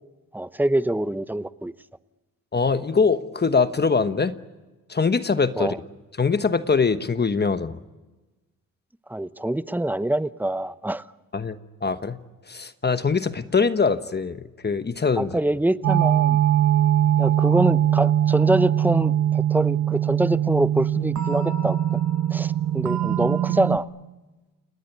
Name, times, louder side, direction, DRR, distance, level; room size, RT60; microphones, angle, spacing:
voice 1, 0.3-1.7 5.6-5.8 9.1-11.0 15.2-16.4 17.2-22.0 22.3-23.9, right 1 dB, 5° right, 14 dB, 0.8 m, -25 dB
voice 2, 2.5-4.4 4.9-5.7 6.2-7.8 11.3-12.2 12.5-15.4, left 5 dB, 30° left, 11 dB, 1.1 m, -23 dB
sound 1, 15.8-23.8, right 11 dB, 60° right, 1.3 m, -22 dB
29.0 x 19.0 x 9.8 m, 1.2 s
cardioid pair, 75°, 33 cm